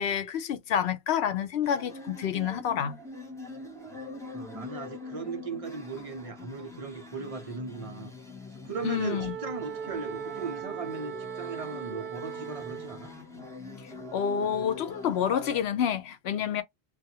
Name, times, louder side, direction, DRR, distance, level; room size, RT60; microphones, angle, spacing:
voice 1, 0.0-3.0 8.8-9.3 14.1-16.6, left 8 dB, 80° left, 0.9 m, -28 dB
sound 1, 1.6-15.6, left 3 dB, 5° left, 0.6 m, -43 dB
voice 2, 4.3-8.1 8.6-13.1, right 4 dB, 40° right, 0.6 m, -38 dB
Wind instrument woodwind instrument, 8.7-13.1, right 9 dB, 70° right, 0.8 m, -39 dB
2.5 x 2.3 x 2.7 m
omnidirectional pair, 1.1 m